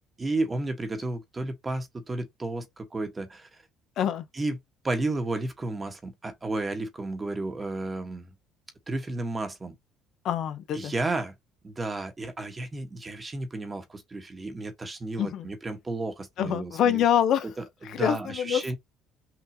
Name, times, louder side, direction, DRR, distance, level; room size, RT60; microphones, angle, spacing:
voice 1, 0.2-3.5 4.3-4.6 4.8-8.3 8.9-9.8 10.7-11.3 11.6-17.0 17.6-18.8, right 2 dB, 20° right, 1.2 m, -32 dB
voice 2, 10.2-10.9 15.2-15.5 16.4-17.5 17.8-18.7, left 9 dB, 60° left, 0.8 m, -25 dB
5.9 x 2.7 x 2.8 m
cardioid pair, 110°, 0 cm